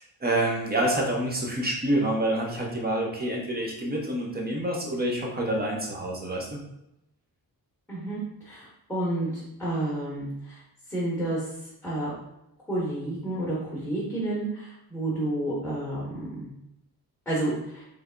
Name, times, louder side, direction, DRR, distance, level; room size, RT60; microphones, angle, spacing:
voice 1, 0.0-6.6, right 1 dB, 25° right, -1 dB, 0.7 m, -27 dB
voice 2, 7.9-8.2 8.4-10.6 10.9-11.4 11.8-12.1 12.7-16.5 17.3-17.8, right 1 dB, 5° left, -8 dB, 1.1 m, -30 dB
3.3 x 3.3 x 3.7 m, 0.84 s
wide cardioid pair, 175°, 37 cm